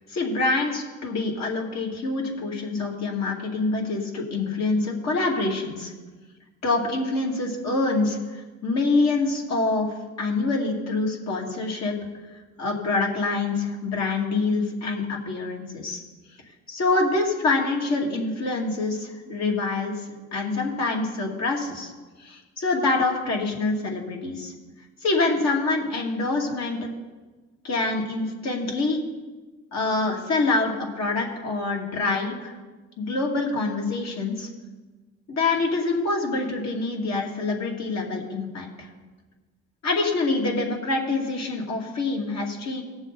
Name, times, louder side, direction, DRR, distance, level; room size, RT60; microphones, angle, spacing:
voice 1, 0.1-5.9 6.6-11.9 12.6-16.0 16.7-21.9 22.2-24.5 25.0-26.9 27.6-29.0 29.7-32.5 33.0-34.5 35.3-38.9 39.8-42.8, left 3 dB, 60° left, -1 dB, 2.6 m, -26 dB
18.0 x 7.1 x 4.1 m, 1.3 s
cardioid pair, 90°, 30 cm